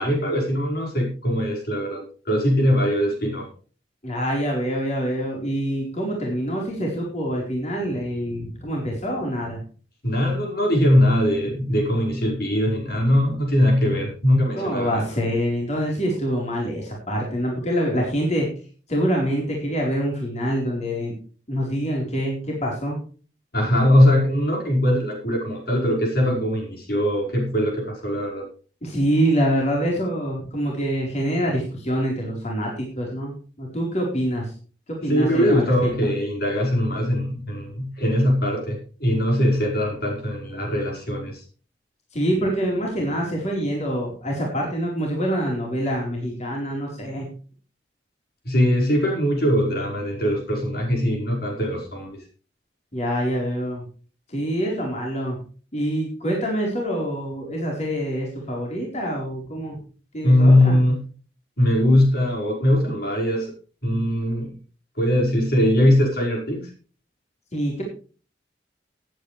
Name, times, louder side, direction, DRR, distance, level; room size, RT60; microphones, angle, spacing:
voice 1, 0.0-3.5 10.0-15.0 23.5-28.5 35.1-41.4 48.5-52.2 60.2-61.0 61.6-63.5 63.8-64.6 65.0-66.7, left 1 dB, 60° left, 0 dB, 5.3 m, -21 dB
voice 2, 4.0-9.6 14.6-18.5 18.9-21.2 21.5-23.0 28.8-34.5 34.9-35.7 42.1-47.3 52.9-53.8 54.3-55.4 55.7-59.8 60.1-60.8 67.5-67.8, equal, 40° left, -2 dB, 4.3 m, -25 dB
18.5 x 9.3 x 3.3 m, 0.39 s
head